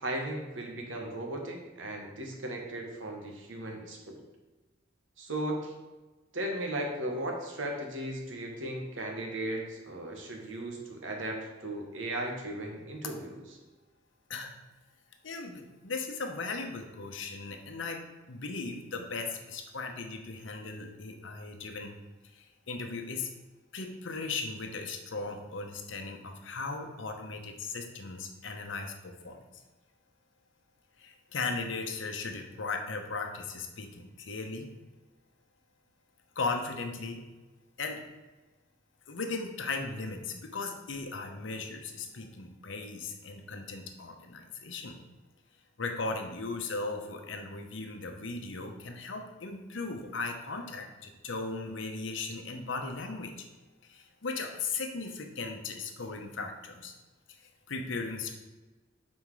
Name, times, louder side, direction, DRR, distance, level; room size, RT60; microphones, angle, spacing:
voice 1, 0.0-4.2 5.2-5.7 6.3-13.4, right 1 dB, 75° right, 1 dB, 1.2 m, -36 dB
voice 2, 15.2-21.9 22.3-23.3 23.7-29.4 31.0-34.7 36.4-37.2 37.8-38.0 39.1-45.0 45.8-53.5 53.8-56.9 57.7-58.3, left 3 dB, 70° left, 4 dB, 0.9 m, -37 dB
5.8 x 4.4 x 4.7 m, 1.2 s
head